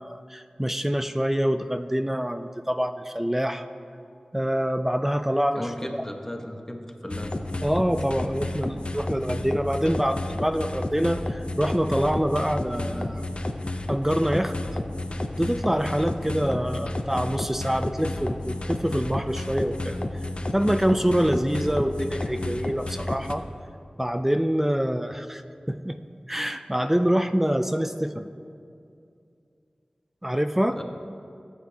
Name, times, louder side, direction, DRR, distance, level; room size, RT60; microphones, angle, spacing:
voice 1, 0.0-3.6 4.3-5.7 5.9-6.0 7.6-13.2 13.9-14.6 15.4-20.0 20.5-23.5 24.0-25.4 25.7-26.0 26.3-28.3 30.2-30.8, equal, 10° right, 9 dB, 0.5 m, -25 dB
voice 2, 5.5-7.4 30.8-30.9, left 1 dB, 20° left, 3 dB, 1.2 m, -35 dB
sound 1, 7.1-23.3, left 1 dB, 45° left, 0.7 m, -31 dB
18.5 x 8.3 x 2.9 m, 2.5 s
wide cardioid pair, 40°, 2 cm